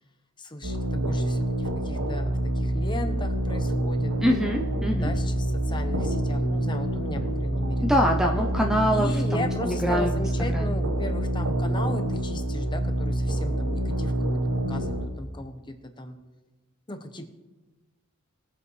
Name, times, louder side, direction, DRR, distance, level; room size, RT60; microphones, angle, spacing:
voice 1, 0.4-4.1 5.0-8.0 8.9-14.1 14.7-16.2 16.9-17.3, left 1 dB, 20° left, 6 dB, 1.0 m, -36 dB
sound 1, 0.6-15.1, right 1 dB, 75° right, 1.1 m, -27 dB
voice 2, 4.2-5.1 7.8-10.2 10.5-10.8, equal, ahead, 1 dB, 0.6 m, -25 dB
21.0 x 7.9 x 3.2 m, 1.1 s
head